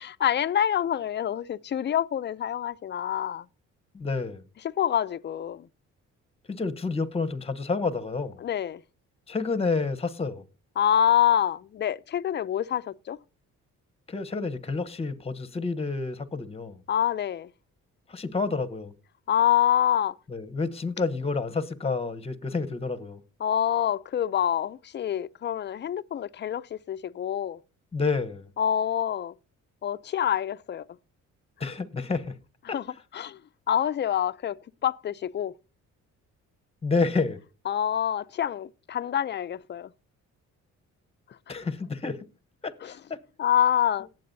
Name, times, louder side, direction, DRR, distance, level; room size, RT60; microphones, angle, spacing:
voice 1, 0.0-3.5 4.6-5.7 8.4-8.8 10.8-13.2 16.9-17.5 19.3-20.1 23.4-27.6 28.6-29.3 29.8-30.9 32.7-32.9 33.1-33.4 33.7-35.5 37.7-39.9 42.8-43.0 43.4-44.1, left 10 dB, 35° left, 0.5 m, -26 dB
voice 2, 3.9-4.4 6.5-8.4 9.3-10.4 14.1-16.8 18.1-18.9 20.3-23.2 27.9-28.5 31.6-32.3 32.7-32.8 36.8-37.4 41.5-42.2 42.6-43.2, left 4 dB, 20° left, 1.0 m, -29 dB
18.0 x 7.7 x 2.7 m
cardioid pair, 90°, 30 cm